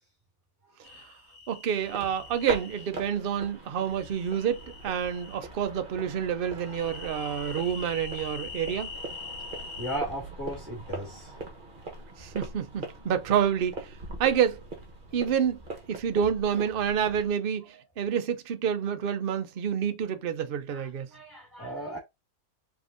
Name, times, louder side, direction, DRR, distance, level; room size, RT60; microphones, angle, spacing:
sound 1, 0.8-2.9 3.8-5.4 6.6-10.0, left 5 dB, 50° left, 1.4 m, -43 dB
voice 1, 1.5-8.9 12.2-13.9 14.2-14.6 15.1-15.6 15.9-21.1, right 8 dB, 50° right, 0.7 m, -28 dB
sound 2, 1.8-17.3, right 2 dB, 35° right, 1.2 m, -42 dB
voice 2, 9.7-11.3 15.1-15.2 20.7-22.0, right 1 dB, 15° right, 1.9 m, -37 dB
5.2 x 3.5 x 2.6 m
omnidirectional pair, 1.6 m